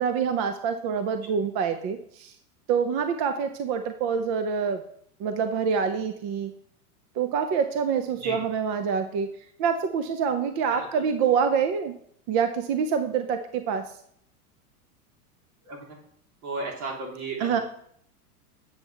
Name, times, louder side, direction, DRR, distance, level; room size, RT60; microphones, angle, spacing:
voice 1, 0.0-2.3 2.7-4.8 5.2-6.5 7.2-9.3 9.6-11.9 12.3-13.9 17.4-17.6, right 6 dB, 35° right, 8 dB, 0.5 m, -26 dB
voice 2, 10.7-11.1 15.7-15.9 16.4-17.6, right 3 dB, 65° right, -1 dB, 3.5 m, -34 dB
9.1 x 7.1 x 3.3 m, 0.65 s
supercardioid pair, 135°, 47 cm